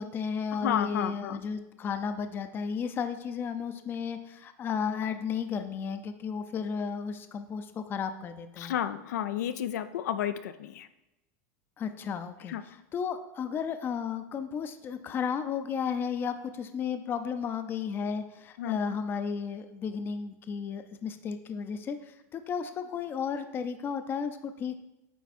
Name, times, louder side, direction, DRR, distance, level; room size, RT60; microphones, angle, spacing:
voice 1, 0.0-8.7 11.8-24.8, left 6 dB, 25° left, 10 dB, 0.5 m, -33 dB
voice 2, 0.6-1.4 8.6-10.9 12.5-12.6 18.6-18.8, left 10 dB, 90° left, 11 dB, 0.4 m, -31 dB
9.2 x 3.5 x 4.2 m, 0.96 s
supercardioid pair, 145°, 9 cm